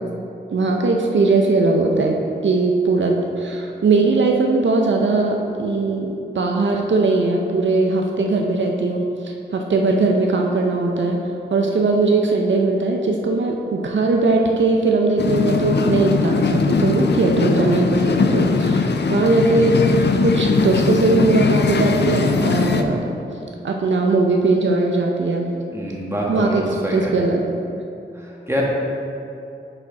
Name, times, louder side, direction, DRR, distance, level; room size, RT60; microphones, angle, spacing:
voice 1, 0.5-23.2 23.6-25.6 26.3-26.6 26.9-27.5, right 3 dB, 75° right, 1 dB, 0.6 m, -19 dB
sound 1, 15.2-22.8, left 4 dB, 65° left, 0.5 m, -20 dB
voice 2, 25.7-27.1 28.1-28.6, equal, 15° right, -4 dB, 1.5 m, -26 dB
6.5 x 4.9 x 4.7 m, 2.7 s
wide cardioid pair, 65°, 19 cm